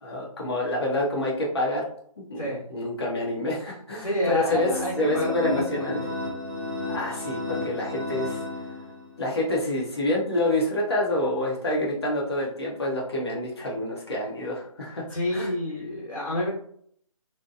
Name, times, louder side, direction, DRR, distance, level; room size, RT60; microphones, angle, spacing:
voice 1, 0.0-1.8 2.3-4.7 5.0-6.0 6.9-8.4 9.2-15.0 15.3-15.5 15.9-16.0, left 1 dB, 45° left, -3 dB, 0.7 m, -27 dB
voice 2, 4.0-6.0 15.1-16.5, left 1 dB, 85° left, -4 dB, 1.3 m, -29 dB
sound 1, 4.5-9.2, left 2 dB, 10° left, 0.7 m, -33 dB
2.7 x 2.1 x 2.4 m, 0.62 s
figure-of-eight pair, 150°, 18 cm